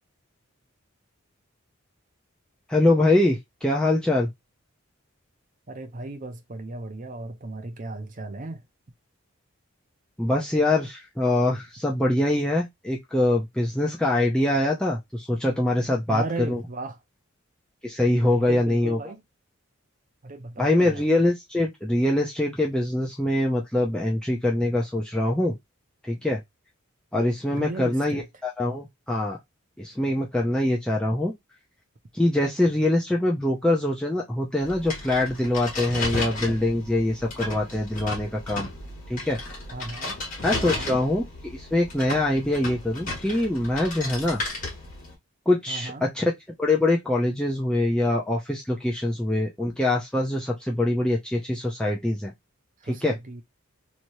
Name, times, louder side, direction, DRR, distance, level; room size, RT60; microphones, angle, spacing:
voice 1, 2.7-4.3 10.2-16.6 17.8-19.0 20.6-25.6 26.0-26.4 27.1-29.4 29.8-31.3 32.1-38.7 39.1-39.4 40.4-44.4 45.5-46.3 46.6-52.3 52.9-53.1, left 1 dB, 5° left, 0.5 m, -24 dB
voice 2, 5.7-8.6 16.1-17.0 18.2-19.2 20.2-21.0 27.5-28.3 39.7-40.2 40.6-41.0 45.7-46.0 52.8-53.4, right 2 dB, 40° right, 0.6 m, -36 dB
sound 1, 34.6-45.1, left 2 dB, 40° left, 1.6 m, -34 dB
3.0 x 3.0 x 2.6 m
head